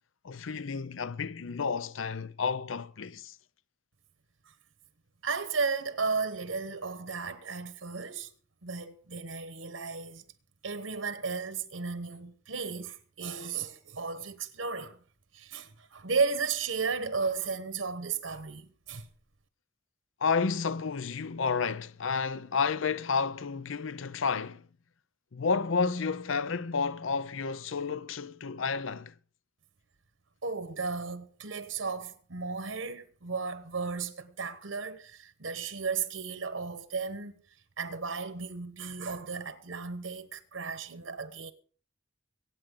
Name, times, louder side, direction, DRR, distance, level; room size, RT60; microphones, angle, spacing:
voice 1, 0.2-3.4 20.2-24.6 25.3-29.1, left 5 dB, 75° left, 0.6 m, -31 dB
voice 2, 5.2-8.3 8.6-10.2 10.6-15.0 15.3-19.1 30.4-37.4 37.8-41.5, right 4 dB, 80° right, 1.1 m, -34 dB
24.0 x 8.9 x 3.8 m
head